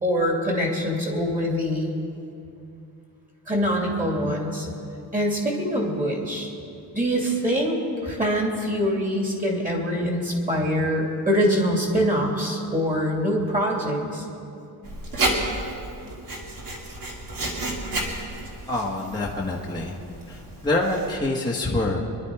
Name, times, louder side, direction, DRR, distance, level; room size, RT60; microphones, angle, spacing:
voice 1, 0.0-1.9 3.5-4.7 5.1-6.5 6.9-14.3, equal, 20° right, -1 dB, 2.7 m, -24 dB
Writing, 14.8-21.2, right 1 dB, 50° right, 2.4 m, -31 dB
voice 2, 18.7-20.0 20.3-22.0, left 2 dB, 10° left, -4 dB, 1.3 m, -26 dB
24.5 x 11.5 x 4.8 m, 2.6 s
wide cardioid pair, 170°, 42 cm